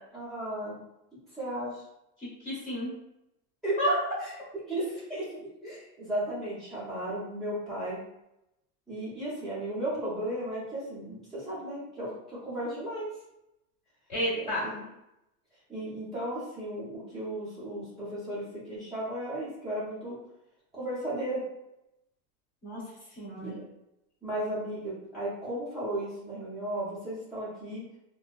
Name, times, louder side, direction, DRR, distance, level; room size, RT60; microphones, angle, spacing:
voice 1, 0.1-0.8 1.3-1.8 3.6-3.8 4.7-8.0 8.9-13.1 14.6-14.9 15.7-20.2 20.7-21.4 23.3-23.7 24.2-27.8, right 1 dB, ahead, -13 dB, 0.6 m, -35 dB
voice 2, 2.2-2.9 3.8-4.0 14.1-14.7 22.6-22.8 23.1-23.5, equal, 15° left, -8 dB, 1.2 m, -30 dB
4.1 x 2.1 x 2.3 m, 0.87 s
supercardioid pair, 175°, 49 cm